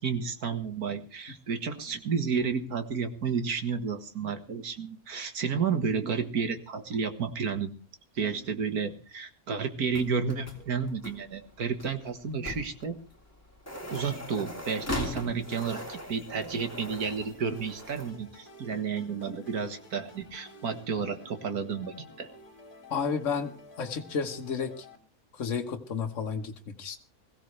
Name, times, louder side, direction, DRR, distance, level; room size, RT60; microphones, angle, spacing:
voice 1, 0.0-7.7 8.2-12.9 13.8-22.3, right 6 dB, 90° right, 7 dB, 2.1 m, -31 dB
sound 1, 9.9-18.1, left 1 dB, 10° left, 2.8 m, -40 dB
sound 2, 17.0-25.0, left 1 dB, 35° left, 2.9 m, -52 dB
voice 2, 22.9-23.5 23.8-24.8 25.3-27.0, left 6 dB, 55° left, 3 dB, 1.6 m, -32 dB
21.0 x 15.5 x 3.3 m, 0.35 s
omnidirectional pair, 1.6 m